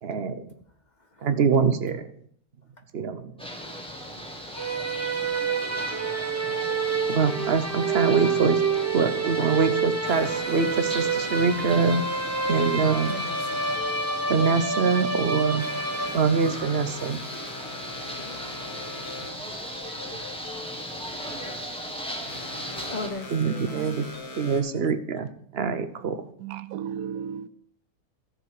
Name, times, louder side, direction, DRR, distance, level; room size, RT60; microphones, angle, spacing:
voice 1, 0.0-0.5 1.2-2.1 2.9-3.3 6.5-6.6 7.1-8.6 8.9-12.1 12.5-13.1 14.3-15.7 16.1-17.2 23.3-24.1 24.4-26.2, right 5 dB, 50° right, 0.9 m, -24 dB
sound 1, 3.4-23.1, equal, 5° left, 1.5 m, -38 dB
sound 2, 4.6-16.6, right 4 dB, 15° right, 0.6 m, -28 dB
sound 3, 10.1-24.6, left 3 dB, 80° left, 2.1 m, -41 dB
voice 2, 12.7-13.7 14.1-14.2 18.1-18.5 22.9-23.9, left 3 dB, 40° left, 0.7 m, -39 dB
voice 3, 23.7-24.0 26.4-27.5, right 8 dB, 75° right, 1.0 m, -35 dB
14.0 x 7.1 x 4.9 m
omnidirectional pair, 1.6 m